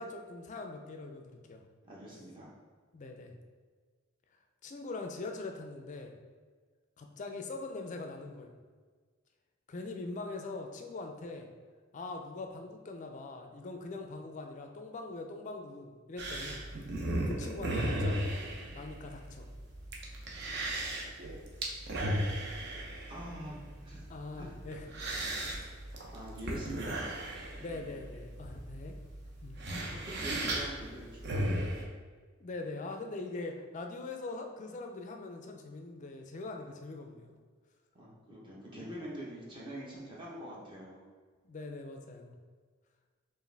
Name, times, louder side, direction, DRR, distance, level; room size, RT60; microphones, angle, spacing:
voice 1, 0.0-1.6 2.9-3.3 4.6-6.1 7.0-8.6 9.7-11.5 11.9-16.7 17.2-18.4 18.7-19.5 24.1-25.6 27.6-28.9 29.4-29.6 32.4-37.4 41.4-42.4, left 3 dB, 35° left, 4 dB, 0.4 m, -42 dB
voice 2, 1.8-2.5 23.1-24.1 24.3-24.5 26.1-27.1 29.6-31.9 37.9-41.1, equal, 25° right, -6 dB, 0.8 m, -45 dB
sound 1, 16.2-31.8, right 1 dB, 55° right, 0.6 m, -36 dB
4.7 x 2.5 x 3.3 m, 1.5 s
head